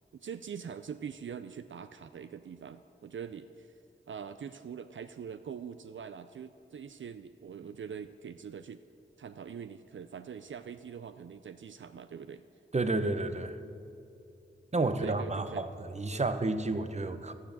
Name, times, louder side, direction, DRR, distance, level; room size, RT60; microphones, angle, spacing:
voice 1, 0.1-3.8 4.1-8.8 9.2-12.4 14.8-15.7 16.1-16.3, right 7 dB, 70° right, 11 dB, 0.4 m, -43 dB
voice 2, 12.7-13.6 14.7-15.7 15.9-17.3, right 2 dB, 35° right, 10 dB, 0.8 m, -30 dB
12.0 x 9.7 x 7.3 m, 2.7 s
wide cardioid pair, 65°, 20 cm